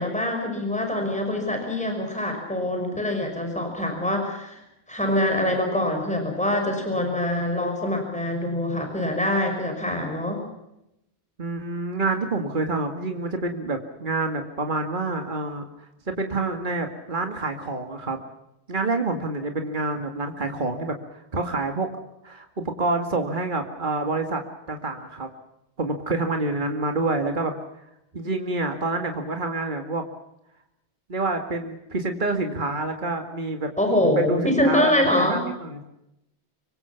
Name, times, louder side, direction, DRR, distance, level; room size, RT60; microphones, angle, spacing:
voice 1, 0.0-4.6 4.9-10.4 33.8-35.4, left 1 dB, 5° left, 3 dB, 5.8 m, -24 dB
voice 2, 11.4-15.6 16.1-18.2 18.7-21.9 22.2-24.4 24.7-25.3 25.8-27.5 28.1-30.0 31.1-33.7 34.2-34.9 35.2-35.8, right 3 dB, 50° right, 5 dB, 2.3 m, -27 dB
26.5 x 24.0 x 5.9 m, 0.84 s
omnidirectional pair, 1.1 m